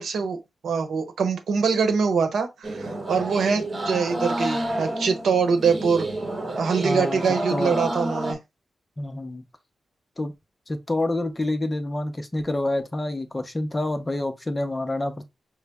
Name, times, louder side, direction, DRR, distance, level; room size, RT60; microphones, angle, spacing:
voice 1, 0.0-6.1 6.6-8.4, right 5 dB, 80° right, 0.9 m, -24 dB
sound 1, 2.6-8.3, right 1 dB, 30° right, 1.0 m, -29 dB
voice 2, 6.8-7.2 7.5-7.8 9.0-9.4 10.2-10.3 10.7-15.3, left 1 dB, 20° left, 0.6 m, -27 dB
5.3 x 2.0 x 3.4 m
wide cardioid pair, 155°, 0 cm